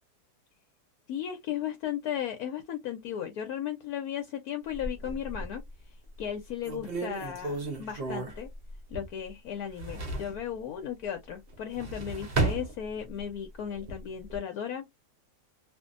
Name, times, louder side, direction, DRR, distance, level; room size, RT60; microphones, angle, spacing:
voice 1, 1.1-5.6 6.2-8.5 8.9-14.9, left 9 dB, 70° left, 1.0 m, -35 dB
sound 1, 4.7-5.7 6.2-6.3 6.6-9.3 9.6-10.4 11.5-13.3 13.7-14.4, right 3 dB, 50° right, 0.7 m, -34 dB
2.6 x 2.4 x 2.4 m
omnidirectional pair, 1.9 m